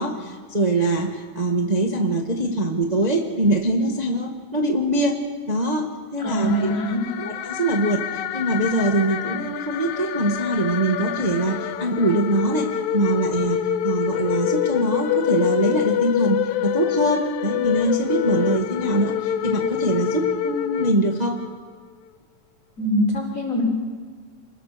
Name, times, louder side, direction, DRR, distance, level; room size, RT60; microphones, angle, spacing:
voice 1, 0.0-5.2 5.5-6.7 7.2-12.7 12.9-21.4, right 1 dB, 20° right, 3 dB, 1.0 m, -23 dB
sound 1, 6.2-21.5, left 10 dB, 70° left, 2.1 m, -26 dB
voice 2, 6.2-7.0 22.8-23.6, equal, 25° left, -1 dB, 5.1 m, -23 dB
27.5 x 20.5 x 6.8 m, 1.5 s
omnidirectional pair, 3.7 m